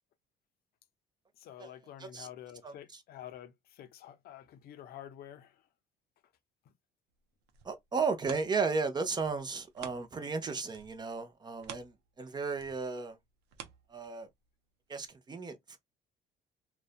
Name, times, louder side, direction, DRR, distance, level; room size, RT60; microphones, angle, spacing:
voice 1, 1.4-5.7, left 11 dB, 65° left, 0.5 m, -49 dB
sound 1, 7.2-10.4 10.7-14.5 15.0-15.1, right 9 dB, 90° right, 0.6 m, -51 dB
voice 2, 7.6-13.2 13.9-14.3 14.9-15.8, right 4 dB, 25° right, 0.6 m, -34 dB
2.5 x 2.2 x 2.3 m
cardioid pair, 110°, 17 cm